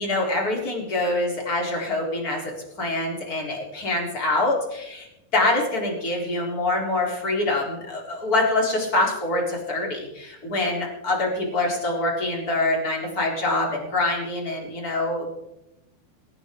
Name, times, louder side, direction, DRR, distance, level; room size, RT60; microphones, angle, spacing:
voice 1, 0.0-2.5 2.8-5.1 5.3-15.3, left 2 dB, 20° left, -1 dB, 4.1 m, -25 dB
21.5 x 17.0 x 3.9 m, 0.87 s
omnidirectional pair, 5.1 m